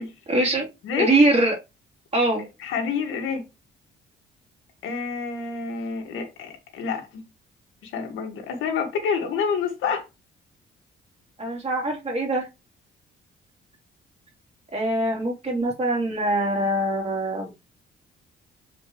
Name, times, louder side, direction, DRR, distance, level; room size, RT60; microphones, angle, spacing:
voice 1, 0.3-0.7 1.0-1.5 2.1-2.4 11.4-12.5 14.7-17.5, right 1 dB, 35° right, 3.2 m, -23 dB
voice 2, 2.6-3.4 4.8-7.2 7.8-10.0, left 6 dB, 90° left, 1.8 m, -28 dB
7.7 x 4.8 x 3.1 m
cardioid pair, 90°, 20 cm